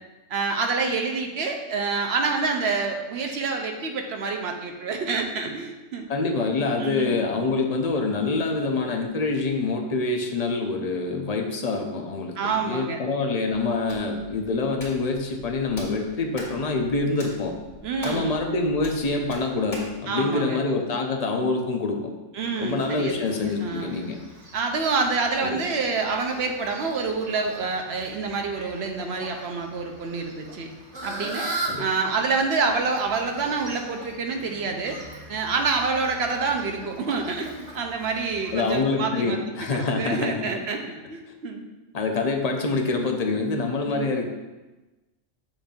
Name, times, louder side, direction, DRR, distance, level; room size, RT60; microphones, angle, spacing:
voice 1, 0.3-6.1 6.8-7.2 12.4-13.0 17.8-18.4 20.1-20.6 22.3-24.0 24.5-30.7 31.0-31.5 31.8-35.0 35.3-39.4 39.7-41.6 43.9-44.1, right 4 dB, 65° right, 3 dB, 0.9 m, -27 dB
voice 2, 6.1-17.5 18.0-22.0 22.6-24.2 25.4-25.6 31.7-31.9 38.5-40.4 41.9-44.3, left 3 dB, 45° left, 3 dB, 0.6 m, -26 dB
Hands, 13.5-20.0, equal, 80° left, 2.1 m, -43 dB
Fowl, 22.4-38.8, right 2 dB, 35° right, 1.0 m, -40 dB
7.1 x 2.6 x 5.2 m, 1.1 s
omnidirectional pair, 1.3 m